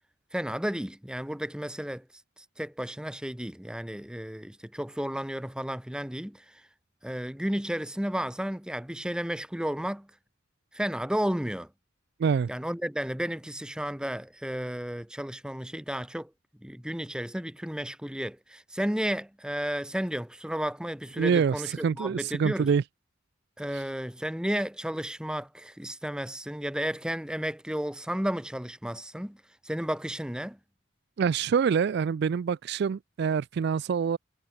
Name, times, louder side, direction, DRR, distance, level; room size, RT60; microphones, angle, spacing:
voice 1, 0.3-2.1 2.4-6.6 7.0-10.1 10.7-11.7 12.5-16.3 16.6-22.7 23.6-30.6, equal, 5° right, 0.9 m, -33 dB
voice 2, 21.2-21.5 21.8-22.8 23.7-23.8 31.2-34.2, right 6 dB, 55° right, 0.3 m, -25 dB
head